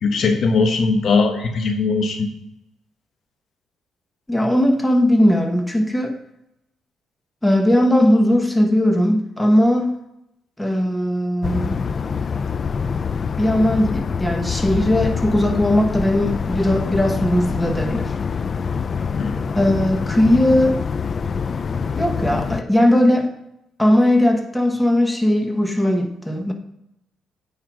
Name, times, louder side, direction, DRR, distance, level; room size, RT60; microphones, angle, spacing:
voice 1, 0.0-2.3 19.2-19.4, left 4 dB, 60° left, 1.3 m, -19 dB
voice 2, 4.3-6.2 7.4-9.9 10.6-11.8 13.4-18.1 19.6-20.8 21.9-23.3 23.8-26.5, left 1 dB, 10° left, 1.2 m, -18 dB
sound 1, 11.4-22.6, left 6 dB, 40° left, 0.3 m, -25 dB
8.8 x 5.8 x 4.7 m
cardioid pair, 90°, 0 cm